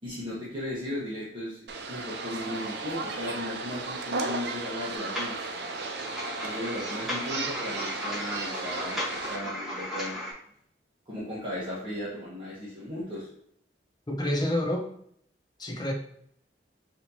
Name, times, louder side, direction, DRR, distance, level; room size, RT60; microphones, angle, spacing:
voice 1, 0.0-1.6 1.9-5.3 6.4-10.2 11.1-13.3, left 1 dB, 30° right, -9 dB, 1.1 m, -36 dB
sound 1, 1.7-9.4, right 3 dB, 70° right, 0.5 m, -35 dB
sound 2, 5.0-10.3, equal, ahead, 1.3 m, -36 dB
voice 2, 14.1-14.9 15.6-15.9, left 1 dB, 25° left, 1 dB, 0.7 m, -28 dB
5.9 x 2.8 x 2.8 m, 0.69 s
head